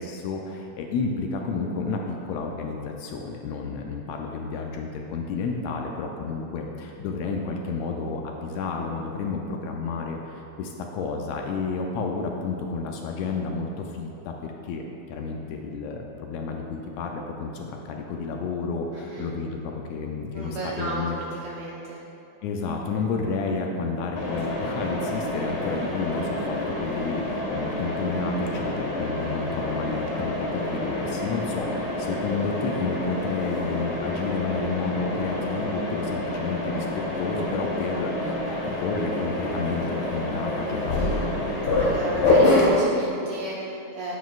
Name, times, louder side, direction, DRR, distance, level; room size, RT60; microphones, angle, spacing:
voice 1, 0.0-21.2 22.4-41.4, left 4 dB, 80° left, 2 dB, 1.7 m, -31 dB
voice 2, 18.9-19.3 20.3-22.0 41.8-44.1, right 1 dB, 75° right, -4 dB, 1.4 m, -34 dB
Mechanisms, 24.2-42.7, left 2 dB, 55° left, 1.6 m, -27 dB
9.2 x 8.0 x 2.4 m, 2.8 s
omnidirectional pair, 3.4 m